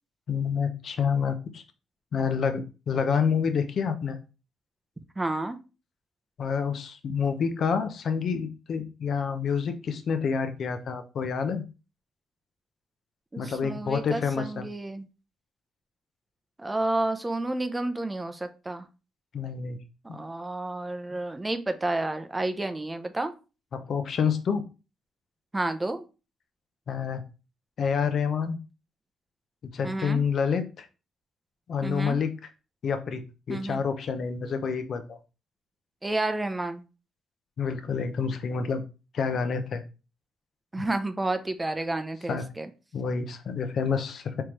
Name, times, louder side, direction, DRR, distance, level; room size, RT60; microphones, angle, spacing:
voice 1, 0.3-1.6 2.1-4.2 6.4-11.6 13.4-14.6 19.3-19.8 23.7-24.6 26.9-27.2 27.8-28.6 29.7-30.9 31.7-32.3 32.8-33.2 33.5-35.2 37.6-38.8 39.1-39.8 42.3-42.5 42.9-44.4, left 6 dB, 60° left, 9 dB, 0.7 m, -28 dB
voice 2, 5.2-5.6 13.3-15.1 16.6-18.8 20.1-23.3 25.5-26.0 29.8-30.2 31.8-32.2 33.5-33.8 36.0-36.8 40.7-42.7, right 2 dB, 15° right, 8 dB, 0.6 m, -30 dB
4.4 x 3.6 x 3.1 m, 0.31 s
cardioid pair, 90°, 0 cm